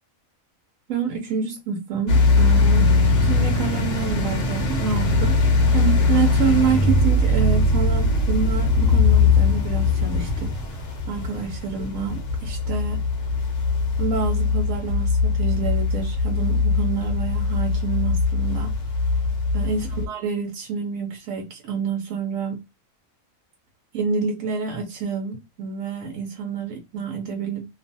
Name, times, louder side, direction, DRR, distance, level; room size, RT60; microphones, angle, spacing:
voice 1, 0.9-13.0 14.0-18.7 19.5-22.6 23.9-27.7, right 6 dB, 80° right, 1.0 m, -28 dB
sound 1, 2.1-20.1, left 3 dB, 55° left, 0.9 m, -21 dB
2.5 x 2.4 x 2.5 m
omnidirectional pair, 1.4 m